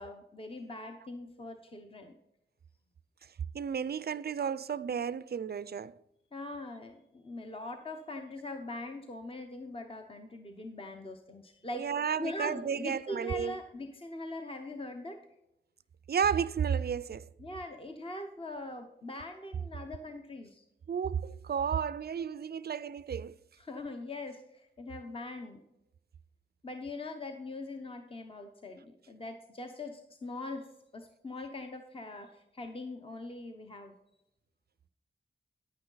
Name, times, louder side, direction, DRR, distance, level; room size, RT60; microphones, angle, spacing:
voice 1, 0.0-2.1 6.3-11.9 12.2-15.2 17.4-20.6 23.6-25.6 26.6-30.7 30.9-33.9, left 2 dB, 30° left, 0.9 m, -42 dB
voice 2, 3.5-5.9 11.7-13.5 16.1-17.3 20.9-23.4, right 7 dB, 55° right, 0.4 m, -32 dB
10.0 x 8.6 x 3.9 m
wide cardioid pair, 100°, 20 cm